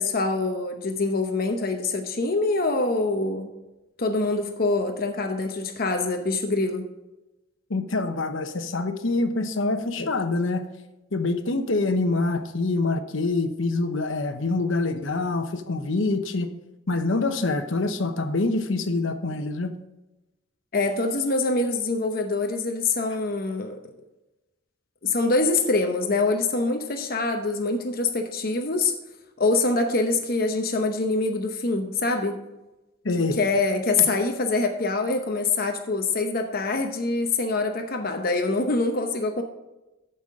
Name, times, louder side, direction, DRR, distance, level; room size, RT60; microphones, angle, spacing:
voice 1, 0.0-3.5 4.0-6.8 20.7-23.8 25.0-28.9 29.4-32.4 33.4-39.4, left 3 dB, 50° left, 5 dB, 0.9 m, -25 dB
voice 2, 7.7-10.7 11.1-16.5 16.9-19.7 33.0-33.4, left 3 dB, 75° left, 8 dB, 0.9 m, -25 dB
14.0 x 5.7 x 3.7 m, 1.0 s
head